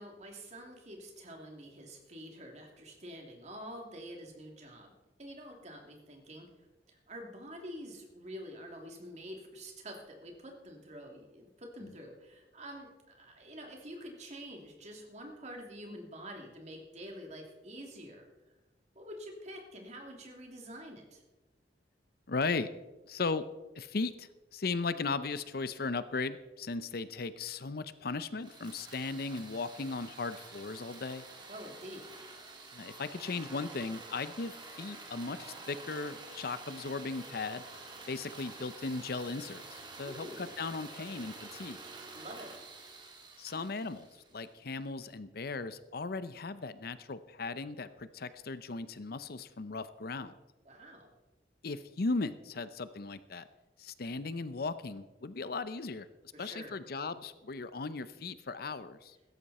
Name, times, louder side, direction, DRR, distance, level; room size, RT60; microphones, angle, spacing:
voice 1, 0.0-4.9 5.2-6.5 6.9-18.2 18.9-21.2 31.5-32.2 40.0-40.6 42.1-42.5 50.6-51.1 56.3-56.8, equal, 40° right, 2 dB, 2.9 m, -47 dB
voice 2, 22.3-22.7 23.0-23.5 23.8-31.2 32.7-37.6 38.1-41.8 43.4-44.1 44.3-50.4 51.6-53.5 53.8-56.1 56.4-59.2, left 3 dB, 60° left, 13 dB, 0.6 m, -37 dB
sound 1, 28.4-44.6, right 3 dB, 25° right, 2.2 m, -49 dB
16.0 x 13.5 x 4.2 m, 1.1 s
head